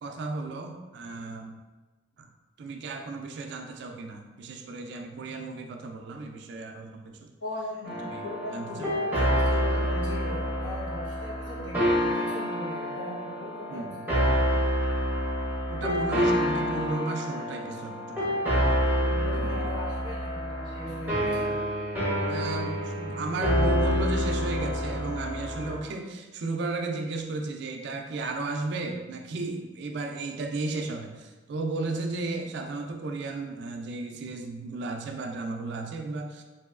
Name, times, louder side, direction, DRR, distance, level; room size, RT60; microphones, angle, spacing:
voice 1, 0.0-1.6 2.2-2.3 2.6-7.3 8.0-9.0 13.7-14.0 15.7-18.4 19.3-19.7 22.3-36.4, right 3 dB, 60° right, 4 dB, 0.3 m, -34 dB
voice 2, 7.4-13.9 18.8-21.6, left 1 dB, 70° left, -6 dB, 1.0 m, -39 dB
sound 1, 7.8-25.8, equal, 10° right, 0.6 m, -28 dB
3.0 x 2.7 x 2.3 m, 1.2 s
head